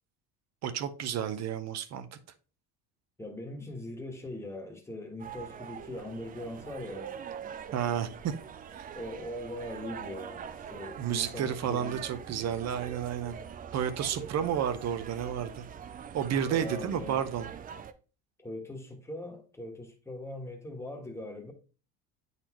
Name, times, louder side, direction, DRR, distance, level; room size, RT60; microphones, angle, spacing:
voice 1, 0.6-2.1 7.7-8.3 8.7-8.9 11.0-13.4 13.7-15.6 16.1-17.5, right 9 dB, 45° right, 0.7 m, -31 dB
voice 2, 3.2-7.1 8.9-12.1 14.4-14.5 16.5-17.3 18.4-21.5, left 1 dB, 5° left, 1.3 m, -41 dB
sound 1, 5.2-17.9, right 8 dB, 25° right, 0.4 m, -43 dB
8.5 x 4.1 x 3.0 m
cardioid pair, 125°, 37 cm